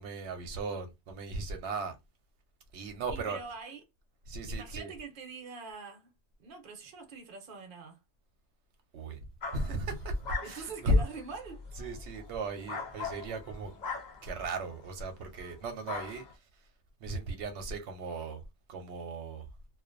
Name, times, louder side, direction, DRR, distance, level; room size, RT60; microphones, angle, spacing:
voice 1, 0.0-2.0 2.7-3.4 4.3-4.9 8.9-9.2 9.5-10.2 10.4-11.0 11.8-13.7 14.2-16.5 17.0-18.4 18.7-19.5, right 1 dB, 85° right, 0.9 m, -35 dB
voice 2, 3.1-3.8 4.5-6.1 6.4-8.0 10.4-11.6, right 5 dB, 55° right, 0.8 m, -44 dB
sound 1, 9.4-14.9 15.3-15.6 15.8-16.3, left 4 dB, 50° left, 0.6 m, -42 dB
2.5 x 2.1 x 2.4 m
omnidirectional pair, 1.1 m